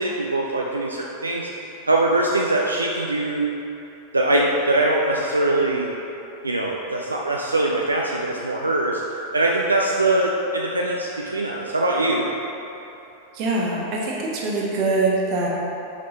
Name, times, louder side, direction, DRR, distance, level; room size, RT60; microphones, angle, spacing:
voice 1, 0.0-1.5 1.9-3.5 4.1-5.9 6.4-9.0 9.3-12.3, right 2 dB, 80° right, -2 dB, 0.4 m, -22 dB
voice 2, 13.3-15.5, right 2 dB, 40° right, -3 dB, 1.2 m, -23 dB
5.4 x 5.1 x 4.0 m, 3.0 s
figure-of-eight pair, 90°, 0 cm